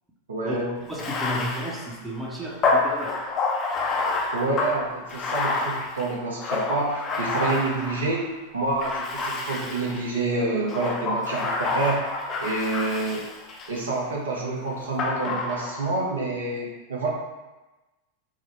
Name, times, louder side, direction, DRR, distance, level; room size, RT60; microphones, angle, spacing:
voice 1, 0.3-0.7 4.3-8.3 8.5-12.0 12.4-13.2 13.7-17.1, right 2 dB, 65° right, -3 dB, 0.6 m, -27 dB
Bathtub (filling or washing), 0.9-8.3 8.8-10.1 10.7-13.8 15.0-16.0, left 3 dB, 30° left, 0.4 m, -28 dB
voice 2, 0.9-3.2, equal, 10° right, -3 dB, 0.6 m, -33 dB
3.6 x 2.1 x 3.2 m, 1.1 s
figure-of-eight pair, 90°, 0 cm